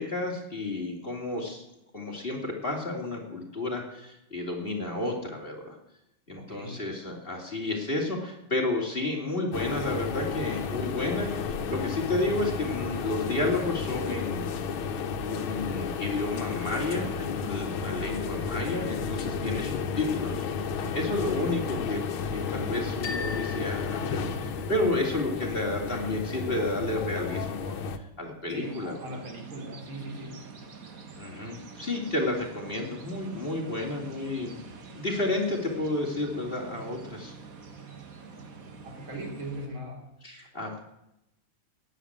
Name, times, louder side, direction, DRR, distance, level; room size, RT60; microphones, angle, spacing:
voice 1, 0.0-1.6 1.9-5.8 6.3-14.5 15.2-22.0 22.3-29.2 31.2-34.5 34.9-37.3 40.2-40.8, left 2 dB, 25° left, 0 dB, 3.1 m, -31 dB
voice 2, 6.4-6.9 19.4-19.8 21.2-22.0 28.5-30.4 38.8-40.1, right 1 dB, 75° right, 2 dB, 4.2 m, -40 dB
sound 1, 9.5-28.0, left 5 dB, 90° left, 1.9 m, -32 dB
sound 2, 23.0-25.0, left 5 dB, 65° left, 2.5 m, -40 dB
sound 3, 28.6-39.7, right 5 dB, 45° right, 1.8 m, -46 dB
14.5 x 10.5 x 8.8 m, 0.85 s
omnidirectional pair, 2.2 m